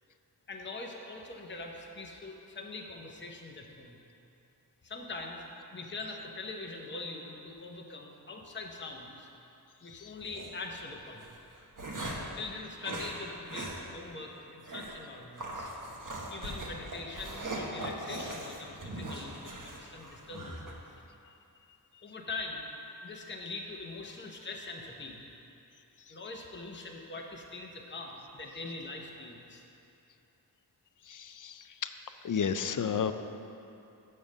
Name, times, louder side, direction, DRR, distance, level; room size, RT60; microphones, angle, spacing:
voice 1, 0.5-4.0 4.8-5.4 5.7-9.3 9.8-11.4 12.3-15.7 16.3-21.0 22.0-22.7 23.0-25.2 26.1-29.7, left 3 dB, 30° left, 0 dB, 0.8 m, -43 dB
sound 1, 10.2-10.5 11.2-12.3 12.8-13.2 13.5-13.8 14.1-14.2 14.7-15.0 15.4-20.7, right 1 dB, 50° right, 1.2 m, -40 dB
voice 2, 31.1-31.9 32.2-33.1, left 7 dB, 50° left, 10 dB, 0.5 m, -32 dB
7.0 x 5.5 x 6.3 m, 2.8 s
wide cardioid pair, 50°, 40 cm